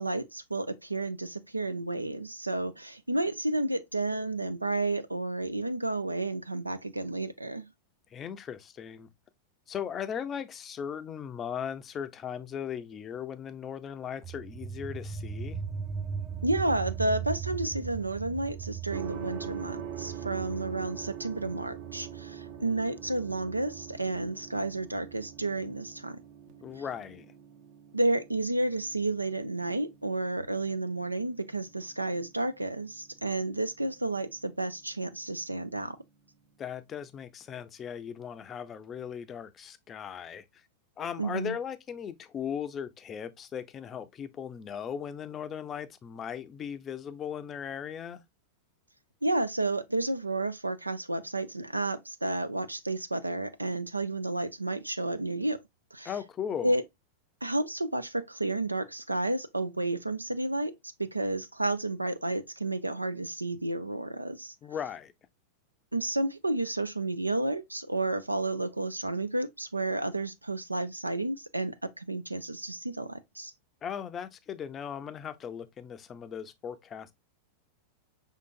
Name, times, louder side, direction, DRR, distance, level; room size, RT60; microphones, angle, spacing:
voice 1, 0.0-7.7 16.4-26.2 27.9-36.0 41.2-41.6 49.2-55.6 55.9-56.1 56.6-56.8 57.4-64.5 65.9-73.5, right 2 dB, 90° right, 0.4 m, -31 dB
voice 2, 8.1-9.1 9.7-15.6 26.6-27.3 36.6-40.4 41.0-48.2 56.0-56.7 64.6-65.1 73.8-77.1, left 8 dB, 25° left, 0.5 m, -38 dB
sound 1, 14.2-25.3, right 7 dB, 15° right, 0.8 m, -39 dB
Gong, 18.9-36.8, right 9 dB, 50° right, 0.9 m, -46 dB
5.1 x 3.7 x 2.3 m
figure-of-eight pair, 90°, 0 cm